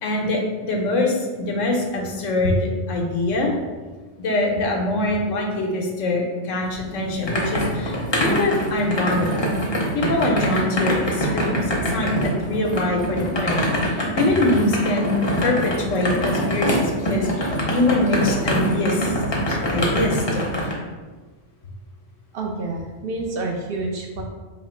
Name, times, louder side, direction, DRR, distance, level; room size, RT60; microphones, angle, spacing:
voice 1, 0.0-3.5 4.2-9.3 9.9-15.1 15.4-19.1 19.5-20.4, left 2 dB, 85° left, 0 dB, 1.0 m, -23 dB
sound 1, 6.7-20.7, equal, 30° left, 0.5 m, -24 dB
voice 2, 22.3-24.2, right 2 dB, 60° right, 1 dB, 0.6 m, -28 dB
3.0 x 2.8 x 4.3 m, 1.3 s
omnidirectional pair, 1.3 m